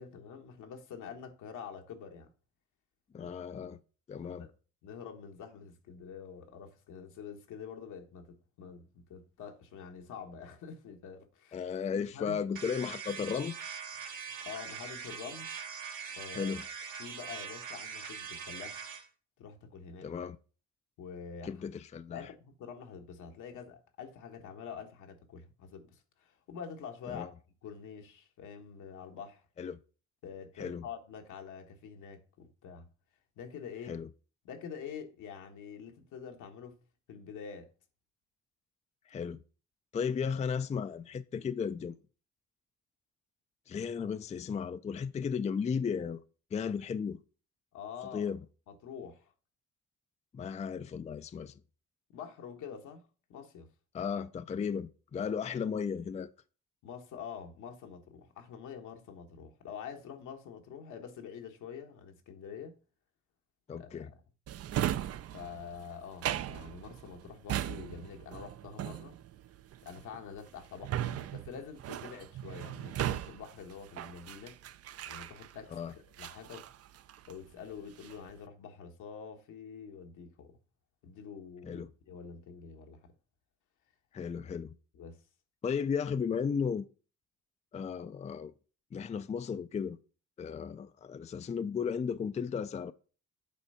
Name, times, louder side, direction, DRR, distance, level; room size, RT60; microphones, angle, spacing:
voice 1, 0.0-2.3 3.2-3.8 4.2-4.5 4.8-12.4 14.0-15.5 16.2-16.5 17.0-18.9 19.4-20.1 21.0-21.6 22.1-27.3 27.6-29.4 30.2-32.9 33.4-34.0 34.4-36.7 37.1-37.7 47.7-48.3 48.7-49.3 52.1-53.0 53.3-53.7 55.4-55.5 56.8-62.7 63.8-64.2 65.3-69.2 69.8-74.6 75.1-76.6 77.3-80.6 81.0-83.0 84.9-85.2, left 7 dB, 80° left, 1.4 m, -46 dB
voice 2, 3.1-3.8 4.1-4.5 11.5-13.6 16.3-16.6 20.0-20.4 21.4-22.3 27.1-27.3 29.6-29.8 30.6-30.8 33.9-34.1 39.1-39.4 39.9-41.9 43.7-46.2 46.5-47.2 48.1-48.4 50.3-51.6 53.9-56.3 63.7-64.1 75.7-75.9 81.6-81.9 84.1-84.7 85.6-86.9 87.7-88.5 88.9-90.0 90.4-92.9, left 6 dB, 25° left, 0.4 m, -35 dB
sound 1, 12.5-19.0, right 7 dB, 80° right, 1.7 m, -42 dB
Drawer open or close, 64.5-75.7 76.2-77.5 77.8-78.3, right 12 dB, 55° right, 0.5 m, -38 dB
8.3 x 3.4 x 5.5 m
cardioid pair, 90°, 30 cm